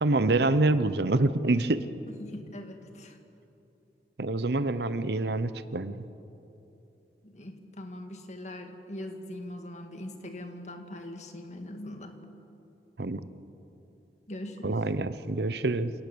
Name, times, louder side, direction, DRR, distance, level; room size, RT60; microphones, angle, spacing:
voice 1, 0.0-1.8 4.2-6.1 13.0-13.3 14.6-15.9, right 2 dB, 65° right, 13 dB, 0.8 m, -26 dB
voice 2, 2.1-3.2 7.2-12.2 14.3-14.8, left 1 dB, 40° left, 5 dB, 1.9 m, -41 dB
28.5 x 18.0 x 7.0 m, 2.9 s
head